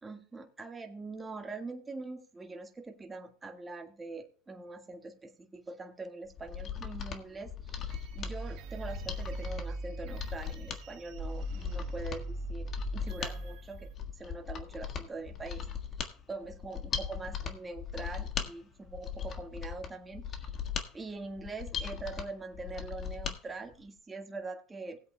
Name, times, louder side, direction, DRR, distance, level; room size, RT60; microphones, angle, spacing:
voice 1, 0.0-13.9 14.2-15.7 16.3-20.6 20.9-25.0, right 3 dB, 15° right, 4 dB, 1.6 m, -43 dB
Mechanisms, 6.3-23.4 23.7-23.8, left 8 dB, 35° left, 1.5 m, -39 dB
sound 1, 7.9-13.9, right 2 dB, 55° right, 2.3 m, -40 dB
19.0 x 8.2 x 2.2 m, 0.40 s
supercardioid pair, 130°, 0 cm